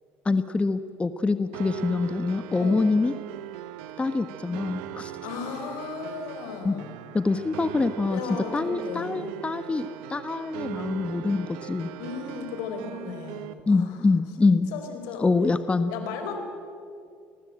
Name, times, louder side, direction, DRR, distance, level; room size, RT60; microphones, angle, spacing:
voice 1, 0.2-3.1 4.0-5.1 6.6-6.8 7.1-8.2 8.5-11.9 13.7-14.7 15.2-15.9, left 3 dB, 20° left, 11 dB, 1.3 m, -25 dB
sound 1, 1.5-13.5, right 12 dB, 80° right, 1.3 m, -39 dB
voice 2, 5.2-6.9 8.1-9.3 12.0-13.9 14.4-15.3 15.9-16.4, left 6 dB, 75° left, 6 dB, 4.8 m, -35 dB
29.5 x 21.0 x 8.9 m, 2.4 s
hypercardioid pair, 75°, 6 cm